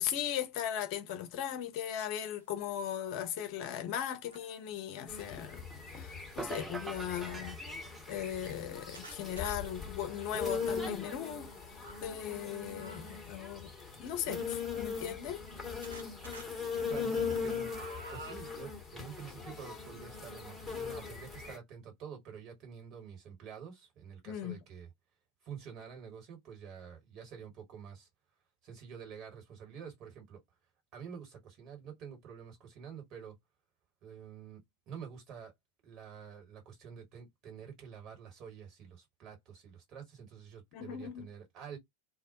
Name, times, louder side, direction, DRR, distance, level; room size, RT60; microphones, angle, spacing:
voice 1, 0.0-7.6 8.1-13.7 14.0-15.4 24.3-24.6 40.7-41.3, left 10 dB, 45° left, 0.5 m, -38 dB
sound 1, 2.4-2.5 3.0-5.0 6.0-6.4 7.0-7.1 7.4-7.5 8.1-12.1 12.8-13.3 14.3-15.5 15.8-16.5 16.9-18.4, right 2 dB, 70° right, 0.6 m, -53 dB
sound 2, 5.1-21.6, left 5 dB, 5° left, 0.9 m, -40 dB
sound 3, 6.4-8.5, right 3 dB, 10° right, 0.4 m, -44 dB
voice 2, 16.9-24.9 25.4-28.1 28.6-30.4 30.9-33.4 34.0-35.5 35.8-41.8, right 7 dB, 35° right, 1.4 m, -48 dB
2.1 x 2.1 x 2.9 m
figure-of-eight pair, 90°, 0 cm